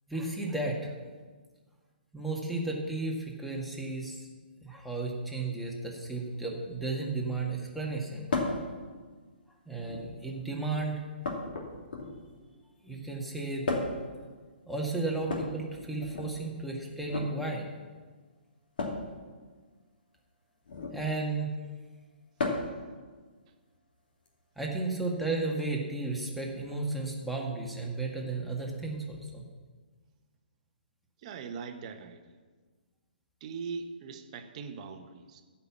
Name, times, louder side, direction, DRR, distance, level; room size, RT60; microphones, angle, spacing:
voice 1, 0.1-0.9 2.1-4.2 4.6-8.5 9.7-11.0 12.8-13.7 14.7-17.7 20.9-21.5 24.6-29.4, right 3 dB, ahead, -1 dB, 1.8 m, -33 dB
sound 1, 8.3-8.6 9.7-10.2 11.2-12.3 13.7-14.1 15.2-16.3 17.0-17.3 18.8-19.1 20.6-21.0 22.4-22.8 24.3-24.4 25.6-25.7, left 3 dB, 60° left, 2.8 m, -33 dB
voice 2, 31.2-32.4 33.4-35.4, right 5 dB, 40° right, 7 dB, 1.1 m, -41 dB
14.5 x 5.8 x 7.2 m, 1.4 s
figure-of-eight pair, 135°, 6 cm